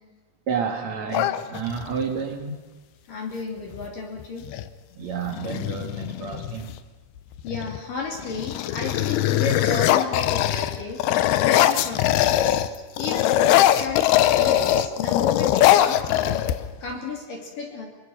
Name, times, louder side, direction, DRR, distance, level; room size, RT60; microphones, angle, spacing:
voice 1, 0.5-2.6 5.0-6.7, right 6 dB, 55° right, 5 dB, 2.2 m, -30 dB
sound 1, 1.1-2.1 3.7-3.9 4.2-4.7 5.3-6.8 7.4-7.8 8.2-12.7 13.0-16.9, left 13 dB, 75° left, 2.6 m, -21 dB
voice 2, 3.1-4.5 7.4-11.0 11.4-12.6 13.0-16.4 16.8-17.9, left 4 dB, 50° left, 0 dB, 4.1 m, -32 dB
25.0 x 22.5 x 6.4 m, 1.3 s
omnidirectional pair, 5.2 m